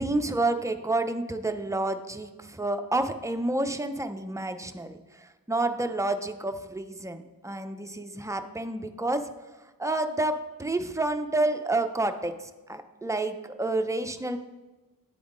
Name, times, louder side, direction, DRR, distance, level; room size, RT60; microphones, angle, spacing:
voice 1, 0.0-9.3 9.6-14.4, right 2 dB, 10° right, 7 dB, 0.4 m, -29 dB
9.5 x 3.5 x 3.8 m, 1.1 s
cardioid pair, 50°, 36 cm